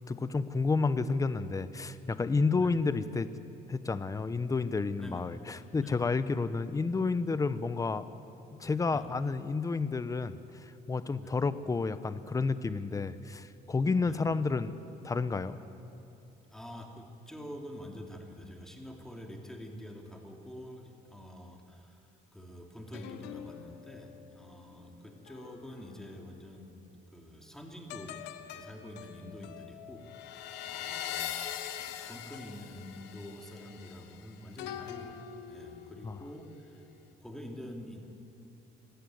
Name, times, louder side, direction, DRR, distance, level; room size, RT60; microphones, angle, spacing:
voice 1, 0.1-3.3 3.7-8.0 8.6-14.7 15.0-15.6 36.0-36.2, left 4 dB, 20° left, 13 dB, 0.8 m, -30 dB
voice 2, 16.5-28.2 28.5-31.4 31.8-35.2 35.5-36.8 37.2-38.0, equal, 5° left, 1 dB, 2.8 m, -47 dB
sound 1, 22.9-26.6 27.9-36.4 36.8-37.1, left 10 dB, 90° left, 1.3 m, -43 dB
25.0 x 13.5 x 9.4 m, 2.7 s
cardioid pair, 110°, 17 cm